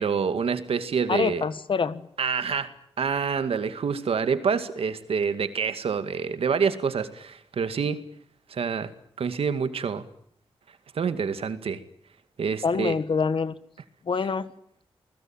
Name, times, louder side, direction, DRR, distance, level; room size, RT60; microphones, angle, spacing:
voice 1, 0.0-1.4 2.2-2.7 3.0-8.0 8.5-8.9 9.2-10.0 10.9-11.8 12.4-12.9, right 6 dB, 75° right, 10 dB, 2.2 m, -27 dB
voice 2, 1.1-2.0 12.6-13.5 14.0-14.5, left 5 dB, 60° left, 14 dB, 1.6 m, -25 dB
29.0 x 20.5 x 9.0 m, 0.70 s
cardioid pair, 65°, 10 cm